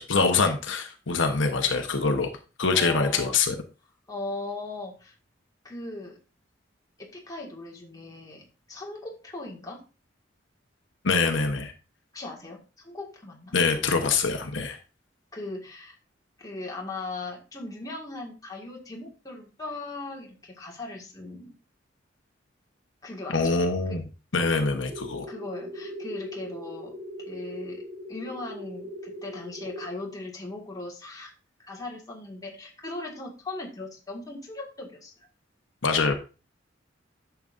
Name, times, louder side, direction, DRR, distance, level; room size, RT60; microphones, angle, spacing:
voice 1, 0.0-2.3 2.6-3.5 11.0-11.7 13.5-14.8 23.3-24.1 24.3-25.3 35.8-36.1, left 4 dB, 85° left, 5 dB, 1.0 m, -24 dB
voice 2, 2.7-3.4 4.1-5.1 5.6-6.2 7.0-9.9 12.1-14.1 15.3-16.0 16.4-21.6 23.0-23.5 23.9-24.0 25.3-27.0 27.3-27.8 28.1-31.3 31.6-35.1, left 2 dB, 20° left, -1 dB, 1.8 m, -38 dB
sound 1, 24.9-29.9, equal, 30° right, 2.3 m, -39 dB
10.5 x 6.9 x 2.5 m, 0.32 s
head